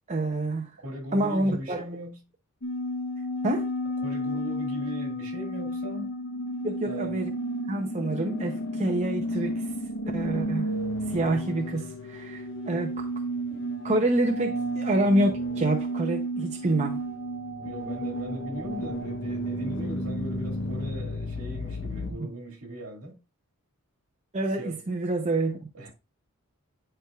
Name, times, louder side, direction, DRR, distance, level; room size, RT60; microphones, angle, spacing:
voice 1, 0.1-0.7 1.1-1.8 3.4-3.7 6.6-7.3 7.7-9.7 10.1-10.7 11.1-13.1 13.5-17.0 22.1-22.3 24.3-25.6, right 2 dB, 30° right, 0.7 m, -27 dB
voice 2, 0.8-2.2 4.0-6.1 6.8-7.2 17.6-23.2 24.5-24.8 25.7-25.9, right 1 dB, 70° right, 2.0 m, -39 dB
sound 1, 2.6-22.1, equal, 55° left, 0.8 m, -32 dB
11.0 x 4.5 x 2.4 m
head